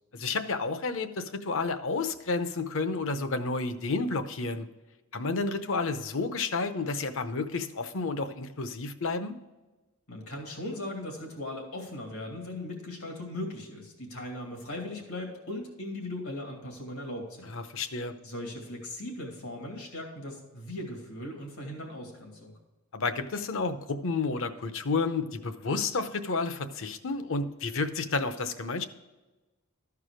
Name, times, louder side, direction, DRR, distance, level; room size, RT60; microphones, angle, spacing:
voice 1, 0.1-4.7 5.1-9.3 17.5-18.1 22.9-28.8, left 3 dB, 65° left, 10 dB, 0.7 m, -31 dB
voice 2, 10.1-17.5 18.2-22.6, left 1 dB, 85° left, 1 dB, 2.5 m, -38 dB
13.0 x 4.8 x 5.0 m, 1.1 s
head